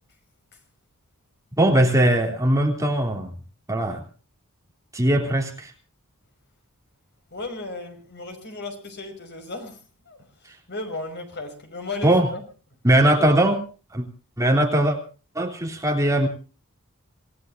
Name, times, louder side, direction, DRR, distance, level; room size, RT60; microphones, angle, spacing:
voice 1, 1.6-3.3 3.7-4.0 4.9-5.7 12.0-12.3 12.8-13.6 13.9-14.0 14.4-15.0 15.3-16.3, right 1 dB, 15° right, 2 dB, 3.1 m, -20 dB
voice 2, 7.3-9.8 10.1-10.2 10.7-12.4 13.0-13.3, left 2 dB, 50° left, 6 dB, 5.7 m, -35 dB
27.0 x 18.0 x 2.7 m, 0.37 s
head